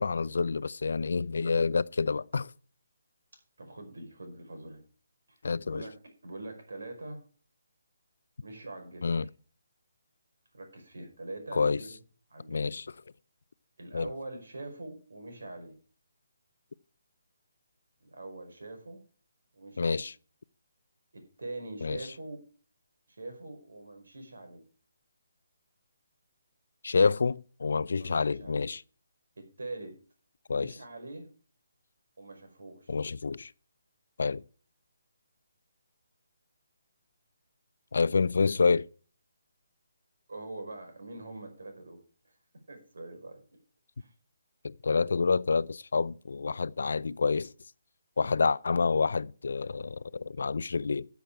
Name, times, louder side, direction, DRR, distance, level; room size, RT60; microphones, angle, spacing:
voice 1, 0.0-2.5 5.4-5.8 9.0-9.3 11.5-11.8 12.5-12.8 13.9-14.1 19.8-20.1 21.8-22.0 26.8-28.8 30.5-30.7 32.9-33.5 34.2-34.4 37.9-38.9 44.6-47.5 48.2-51.1, left 4 dB, 60° left, 0.5 m, -28 dB
voice 2, 3.6-4.8 5.3-5.4 5.6-7.2 8.4-9.1 10.5-12.0 12.3-12.7 13.8-15.8 18.0-19.0 19.5-20.0 21.1-22.4 23.1-24.6 28.0-28.7 29.4-30.0 30.5-31.3 32.2-33.0 40.3-42.0 42.7-43.4 44.0-44.1, right 2 dB, 85° right, 5.2 m, -43 dB
13.5 x 7.2 x 4.8 m
hypercardioid pair, 175°, 0 cm